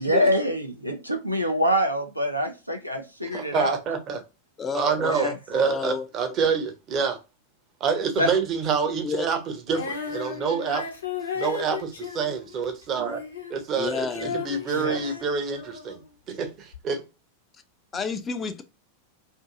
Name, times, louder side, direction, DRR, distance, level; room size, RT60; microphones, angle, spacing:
voice 1, 0.0-3.8 5.1-5.3 8.2-8.3 14.7-15.0, equal, 90° right, 0.5 m, -25 dB
voice 2, 3.3-4.2 4.7-7.2 7.8-9.4 9.7-10.8 11.3-13.2 13.5-16.0 16.3-17.0, right 6 dB, 35° right, 0.7 m, -27 dB
voice 3, 4.6-6.5 8.8-9.3 13.8-14.4 17.9-18.6, left 5 dB, 20° left, 0.4 m, -31 dB
Female singing, 9.7-16.0 16.7-16.8, left 6 dB, 75° left, 0.7 m, -35 dB
2.7 x 2.5 x 2.3 m
figure-of-eight pair, 90°, 0 cm